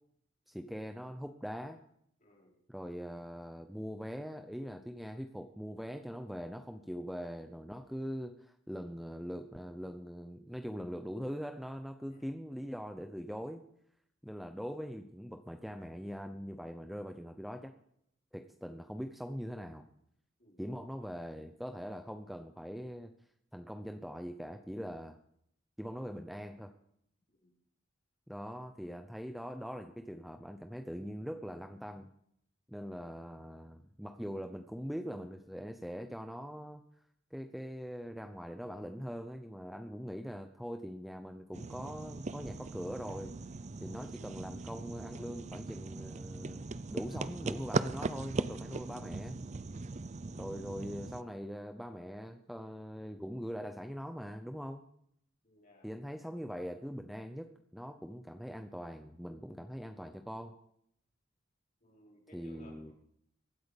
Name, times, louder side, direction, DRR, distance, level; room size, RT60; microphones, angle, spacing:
voice 1, 0.5-1.8 2.7-13.6 14.2-17.7 18.3-19.8 20.6-23.1 23.5-25.2 25.8-26.7 28.3-32.1 32.7-36.8 37.3-43.4 43.8-49.4 50.3-54.9 55.8-60.5 62.3-62.9, equal, ahead, 6 dB, 0.7 m, -42 dB
voice 2, 2.2-2.6 12.1-12.3 20.4-21.1 27.4-27.5 55.4-55.9 61.8-62.9, left 1 dB, 40° left, -2 dB, 4.8 m, -62 dB
sound 1, 41.5-51.2, right 3 dB, 35° right, 0.5 m, -39 dB
23.5 x 8.3 x 5.3 m, 0.70 s
head